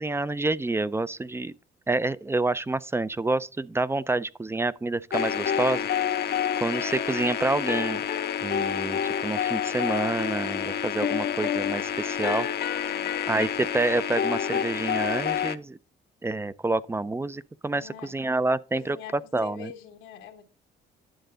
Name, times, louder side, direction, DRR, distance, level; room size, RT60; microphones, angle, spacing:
voice 1, 0.0-1.5 1.9-6.3 6.6-8.0 8.4-12.5 13.3-15.8 16.2-19.7, right 2 dB, 15° right, 0.4 m, -28 dB
sound 1, 5.1-15.6, left 9 dB, 55° left, 0.7 m, -28 dB
voice 2, 12.7-13.1 17.7-18.2 18.7-20.4, left 9 dB, 90° left, 1.3 m, -44 dB
10.0 x 6.6 x 3.8 m
cardioid pair, 90°, 20 cm